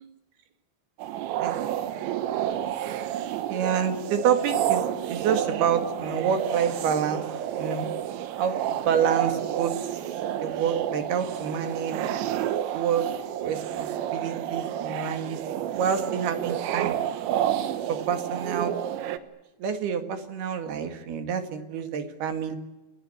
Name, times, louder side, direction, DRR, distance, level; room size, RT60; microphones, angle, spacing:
sound 1, 1.0-19.2, right 11 dB, 80° right, 3.6 m, -30 dB
voice 1, 3.3-7.2 7.6-7.9 8.4-10.0 10.4-12.1 12.7-13.1 13.4-15.4 15.7-17.0 17.9-18.7 19.6-22.6, right 7 dB, 65° right, 8 dB, 3.7 m, -28 dB
29.0 x 19.5 x 9.0 m, 1.1 s
omnidirectional pair, 5.3 m